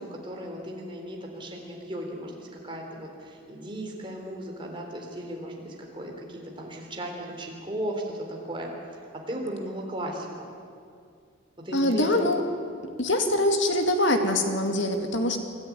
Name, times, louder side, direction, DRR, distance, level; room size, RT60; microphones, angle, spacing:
voice 1, 0.0-8.7 9.3-10.5 11.6-12.3, right 1 dB, 25° right, 0 dB, 3.5 m, -36 dB
voice 2, 11.7-12.4 13.0-15.4, left 1 dB, 65° left, 5 dB, 2.3 m, -24 dB
25.0 x 13.5 x 9.8 m, 2.3 s
head